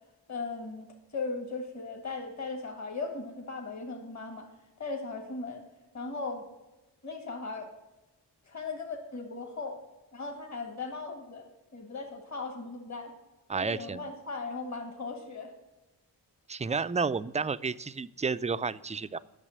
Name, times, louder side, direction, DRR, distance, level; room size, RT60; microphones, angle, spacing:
voice 1, 0.3-4.5 4.8-5.6 5.9-6.4 7.0-7.7 8.5-9.8 10.1-11.4 11.7-13.1 13.5-15.5, left 3 dB, 40° left, 3 dB, 1.8 m, -38 dB
voice 2, 13.5-14.1 16.5-19.2, right 5 dB, 20° right, 14 dB, 0.4 m, -31 dB
8.8 x 6.4 x 6.5 m, 1.1 s
cardioid pair, 55°, 42 cm